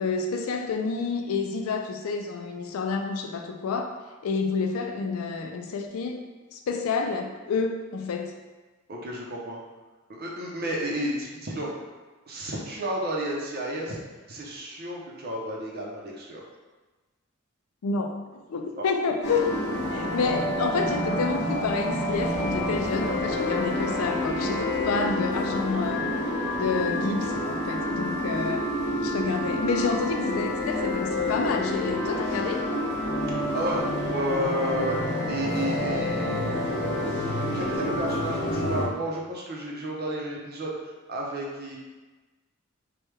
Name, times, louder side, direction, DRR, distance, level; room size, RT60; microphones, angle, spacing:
voice 1, 0.0-3.9 4.2-6.2 6.5-8.3 17.8-19.5 19.9-26.2 26.6-28.6 29.0-32.7, left 4 dB, 85° left, 5 dB, 0.4 m, -29 dB
voice 2, 8.9-9.6 10.1-11.7 12.3-14.0 14.3-16.4 18.8-18.9 33.5-35.0 35.3-37.0 37.3-41.8, right 1 dB, 50° right, -2 dB, 0.6 m, -32 dB
sound 1, 19.2-38.9, left 1 dB, 55° left, 0.7 m, -28 dB
Wind instrument woodwind instrument, 22.2-26.0, right 1 dB, 15° left, 0.7 m, -38 dB
3.1 x 2.2 x 3.3 m, 1.2 s
head